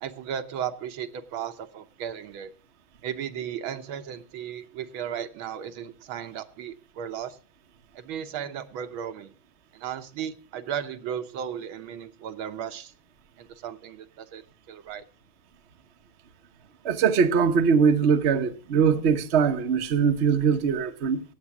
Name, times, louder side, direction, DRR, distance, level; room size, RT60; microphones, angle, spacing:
voice 1, 0.0-2.5 3.0-7.4 8.0-9.3 9.7-12.9 13.4-14.4 14.7-15.0, right 9 dB, 75° right, 1.7 m, -35 dB
voice 2, 16.8-21.2, right 6 dB, 45° right, 0.9 m, -22 dB
17.0 x 7.9 x 6.0 m
omnidirectional pair, 2.3 m